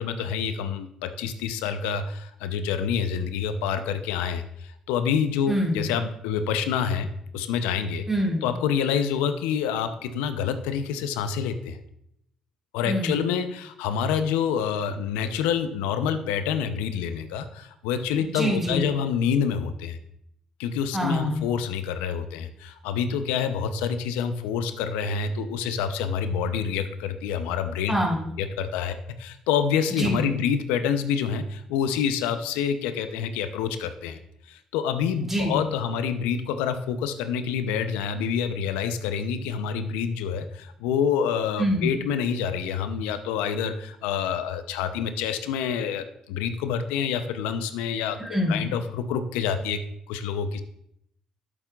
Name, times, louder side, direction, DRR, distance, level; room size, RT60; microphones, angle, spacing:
voice 1, 0.0-7.1 7.3-8.0 8.4-11.8 12.7-20.0 20.6-28.0 28.4-34.2 34.5-49.8 50.1-50.6, left 7 dB, 85° left, 10 dB, 0.6 m, -27 dB
voice 2, 5.5-5.9 8.1-8.5 12.8-13.3 18.2-18.8 20.9-21.5 27.9-28.3 29.9-30.3 35.2-35.6 41.6-41.9 48.2-48.6, equal, 15° right, -3 dB, 3.8 m, -25 dB
11.0 x 8.2 x 2.4 m, 0.73 s
hypercardioid pair, 55°, 2 cm